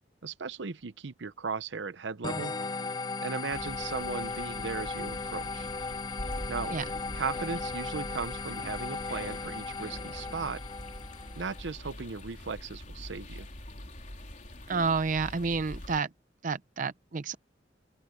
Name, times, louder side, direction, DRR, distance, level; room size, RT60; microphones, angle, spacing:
voice 1, 0.2-2.5 3.2-5.7 6.5-6.7 7.1-10.6 11.4-13.5, right 5 dB, 85° right, 0.8 m, -37 dB
sound 1, 2.2-11.6, left 4 dB, 25° left, 0.5 m, -37 dB
sound 2, 3.5-16.0, left 1 dB, 45° left, 3.9 m, -44 dB
voice 2, 14.7-16.1 16.4-17.4, right 4 dB, 45° right, 0.6 m, -30 dB
open air
head